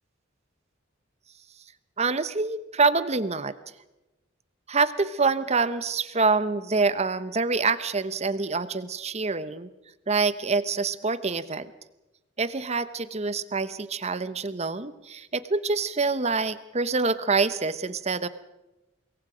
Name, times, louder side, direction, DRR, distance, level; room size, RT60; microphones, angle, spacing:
voice 1, 2.0-3.5 4.7-9.7 10.1-11.7 12.4-18.3, right 4 dB, 35° right, 14 dB, 0.9 m, -26 dB
26.0 x 22.0 x 5.0 m, 1.0 s
head